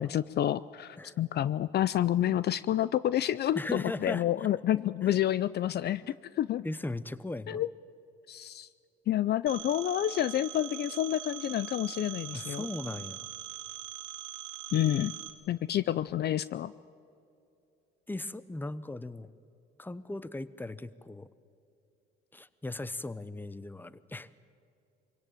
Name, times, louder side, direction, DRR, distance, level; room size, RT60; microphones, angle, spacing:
voice 1, 0.0-6.0 6.4-6.6 7.5-7.7 8.3-8.7 9.1-12.7 14.7-15.1 15.5-16.7, left 12 dB, 50° left, 17 dB, 0.5 m, -29 dB
voice 2, 3.5-4.5 5.0-5.2 6.0-6.1 6.6-7.6 12.3-13.3 18.1-19.3 19.8-21.3 22.3-24.3, left 2 dB, 10° left, 16 dB, 0.9 m, -38 dB
Telephone, 9.5-15.3, right 13 dB, 80° right, 2.0 m, -42 dB
24.5 x 17.0 x 9.0 m, 2.6 s
supercardioid pair, 85°, 21 cm